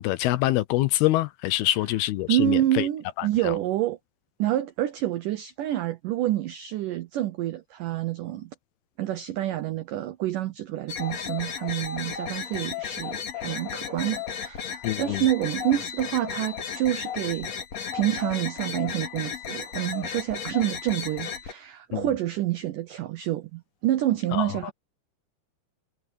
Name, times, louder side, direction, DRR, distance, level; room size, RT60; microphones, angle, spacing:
voice 1, 0.0-2.9 3.2-3.6 14.8-15.2 21.9-22.0 24.3-24.5, left 16 dB, 80° left, 2.4 m, -25 dB
voice 2, 2.3-4.0 4.4-8.5 9.0-17.6 17.9-24.7, right 13 dB, 90° right, 1.8 m, -28 dB
sound 1, 10.9-21.5, left 7 dB, 45° left, 2.9 m, -34 dB
omnidirectional pair, 4.9 m